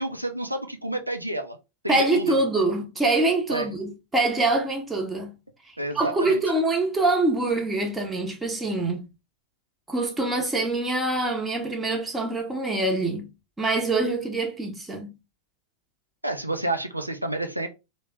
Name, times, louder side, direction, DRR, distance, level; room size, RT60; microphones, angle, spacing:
voice 1, 0.0-1.6 1.8-2.3 3.5-3.7 5.8-6.4 16.2-17.7, right 1 dB, 90° right, 0.4 m, -30 dB
voice 2, 1.9-5.3 5.9-9.1 9.9-13.3 13.6-15.1, right 2 dB, 10° right, 0.8 m, -24 dB
3.2 x 2.1 x 3.5 m
figure-of-eight pair, 90°, 0 cm